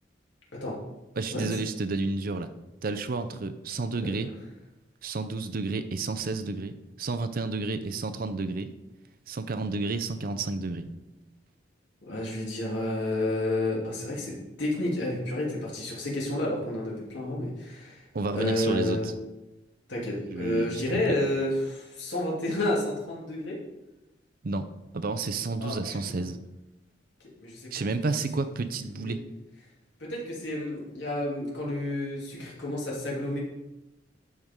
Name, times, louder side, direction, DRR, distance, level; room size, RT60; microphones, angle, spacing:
voice 1, 1.2-2.5 2.8-4.3 5.0-8.7 9.3-10.9 18.1-19.1 20.3-21.0 24.4-24.7 24.9-26.4 27.7-29.2, right 3 dB, 50° right, 10 dB, 0.6 m, -31 dB
voice 2, 12.1-18.0 18.3-19.1 19.9-23.6 25.6-26.2 27.4-27.9 28.9-29.1 30.0-33.4, left 1 dB, 70° left, -4 dB, 2.7 m, -30 dB
12.0 x 4.7 x 3.7 m, 0.98 s
head